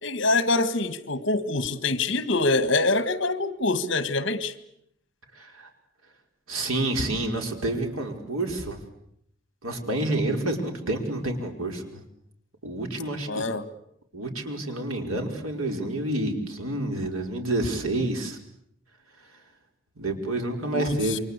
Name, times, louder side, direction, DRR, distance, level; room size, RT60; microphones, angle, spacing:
voice 1, 0.0-4.5 13.3-13.7 20.7-21.2, left 2 dB, 60° left, 13 dB, 1.7 m, -25 dB
voice 2, 5.4-5.7 6.5-8.8 9.6-12.0 12.6-13.4 14.1-18.4 20.0-21.2, right 1 dB, 90° right, 4 dB, 5.0 m, -28 dB
28.5 x 24.0 x 8.3 m, 0.74 s
head